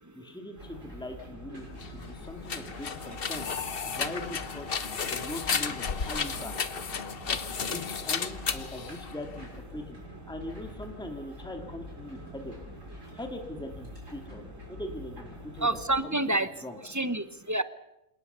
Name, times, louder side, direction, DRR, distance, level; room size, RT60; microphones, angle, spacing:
voice 1, 0.1-3.4 3.8-6.6 7.3-10.0 10.3-12.5 13.1-14.4 14.7-15.7 16.0-16.4 16.6-16.8, left 1 dB, 5° left, 5 dB, 2.3 m, -41 dB
sound 1, 0.6-15.9, left 1 dB, 60° right, 7.4 m, -46 dB
sound 2, 1.7-9.6, left 6 dB, 45° left, 1.2 m, -33 dB
voice 2, 15.6-16.5 16.8-17.6, right 2 dB, 15° right, 13 dB, 0.8 m, -28 dB
27.5 x 18.0 x 6.9 m, 0.89 s
omnidirectional pair, 1.5 m